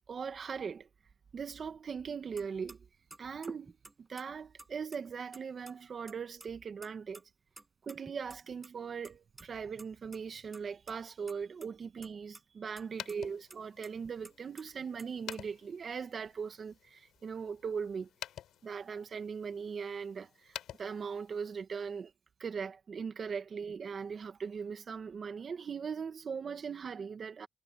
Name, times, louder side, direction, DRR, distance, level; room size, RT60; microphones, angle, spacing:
voice 1, 0.1-0.9 1.3-2.8 3.2-3.8 4.1-7.2 7.8-18.1 18.6-22.1 22.4-27.5, right 6 dB, 45° right, 2.1 m, -40 dB
sound 1, 2.4-2.5 2.7-2.8 3.1-4.2 4.6-5.4 5.7-5.8 6.1-6.5 6.8-7.2 7.6-8.7 9.0-9.5 9.8-9.9 10.1-10.2 10.5-10.9 11.3-11.7 12.0-12.4 12.8-12.9 13.1-13.2 13.5-14.6 15.0-15.4, right 2 dB, 15° right, 7.3 m, -51 dB
sound 2, 12.8-21.6, left 11 dB, 75° left, 5.1 m, -50 dB
cardioid pair, 90°, 0 cm